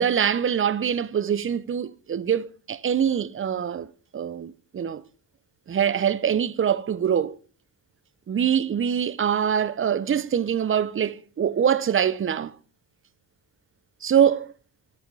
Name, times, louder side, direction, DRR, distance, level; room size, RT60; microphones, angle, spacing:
voice 1, 0.0-3.9 4.1-5.0 5.7-7.4 8.3-12.5 14.0-14.5, right 8 dB, 30° right, 0.6 m, -24 dB
9.8 x 7.7 x 4.6 m
supercardioid pair, 65°, 40 cm